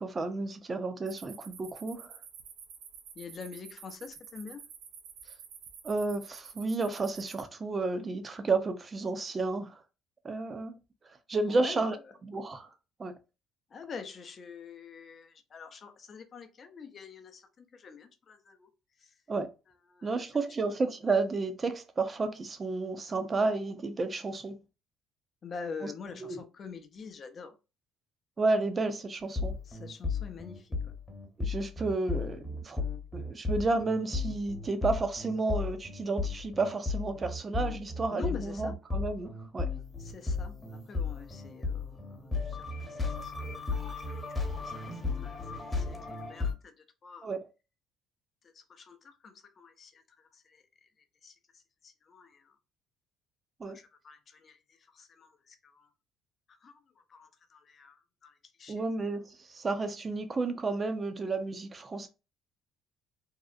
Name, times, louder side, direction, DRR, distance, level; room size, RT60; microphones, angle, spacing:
voice 1, 0.0-2.1 5.8-9.8 10.2-10.8 11.3-11.9 12.3-12.7 13.0-13.2 19.3-19.5 20.0-24.6 26.2-26.4 28.4-29.5 31.4-32.8 33.1-39.7 47.2-47.4 53.6-53.8 58.7-62.1, right 3 dB, 35° right, 0.5 m, -31 dB
sound 1, 1.1-7.4, right 7 dB, 80° right, 0.5 m, -50 dB
voice 2, 3.1-4.6 11.5-12.2 13.7-18.7 19.0-19.1 19.7-20.5 25.4-27.6 29.6-30.9 38.1-38.8 40.0-44.2 44.6-47.3 48.4-50.9 51.2-52.6 53.6-55.9 56.5-58.8, left 5 dB, 45° left, 0.5 m, -47 dB
sound 2, 29.4-46.5, left 4 dB, 20° left, 0.9 m, -34 dB
2.7 x 2.0 x 2.4 m
supercardioid pair, 70°, 0 cm